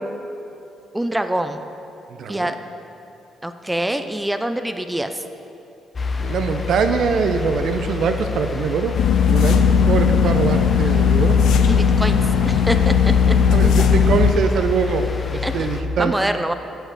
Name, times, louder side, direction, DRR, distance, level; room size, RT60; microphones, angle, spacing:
voice 1, 0.9-1.7 2.3-2.6 3.4-5.2 10.8-10.9 11.7-13.3 15.4-15.7 16.0-16.5, right 1 dB, 10° right, 8 dB, 0.5 m, -25 dB
voice 2, 2.2-2.5 6.2-8.9 9.3-11.4 13.5-16.1, right 5 dB, 65° right, 8 dB, 0.6 m, -23 dB
sound 1, 5.9-15.8, left 6 dB, 35° left, 0.7 m, -27 dB
sound 2, 8.9-14.3, left 7 dB, 80° left, 0.6 m, -17 dB
8.0 x 6.4 x 8.2 m, 2.8 s
cardioid pair, 90°, 0 cm